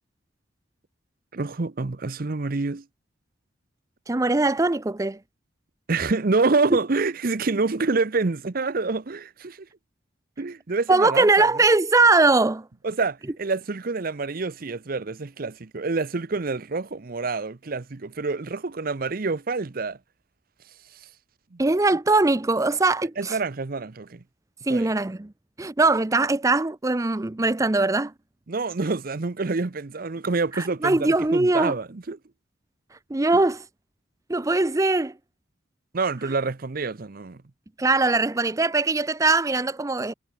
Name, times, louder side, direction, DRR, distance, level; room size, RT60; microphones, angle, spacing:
voice 1, 1.3-2.8 5.9-9.7 10.4-11.5 12.8-20.0 21.5-21.6 23.2-24.2 24.7-24.9 28.5-32.2 35.9-37.4, right 3 dB, 50° right, 0.7 m, -27 dB
voice 2, 4.1-5.2 10.9-12.6 21.6-23.4 24.7-25.3 25.6-28.1 30.6-31.7 33.1-33.6 34.3-35.1 37.8-40.1, right 3 dB, 15° right, 0.5 m, -21 dB
head